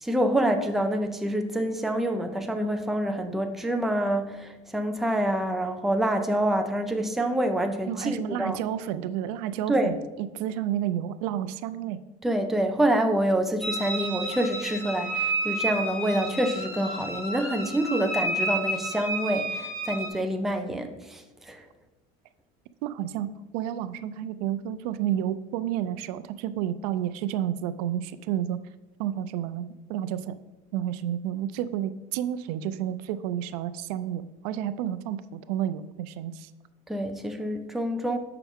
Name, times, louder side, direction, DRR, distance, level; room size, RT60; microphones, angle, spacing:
voice 1, 0.0-8.6 9.7-10.0 12.2-21.6 36.9-38.2, right 1 dB, ahead, 5 dB, 0.4 m, -27 dB
voice 2, 7.9-12.0 22.8-28.6 29.0-30.3 30.7-36.5, right 11 dB, 90° right, 13 dB, 0.4 m, -31 dB
sound 1, 13.6-20.1, right 1 dB, 30° left, 2.0 m, -31 dB
7.2 x 5.8 x 3.5 m, 1.1 s
cardioid pair, 155°, 19 cm